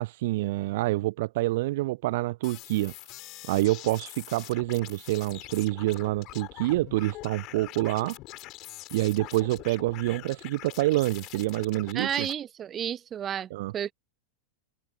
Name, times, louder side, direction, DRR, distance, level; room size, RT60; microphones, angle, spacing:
voice 1, 0.0-8.2 8.9-12.3 13.5-13.7, right 18 dB, 50° right, 0.3 m, -27 dB
sound 1, 2.4-12.3, left 19 dB, 40° left, 4.1 m, -44 dB
voice 2, 11.9-13.9, right 9 dB, 25° right, 1.1 m, -32 dB
figure-of-eight pair, 90°, 0 cm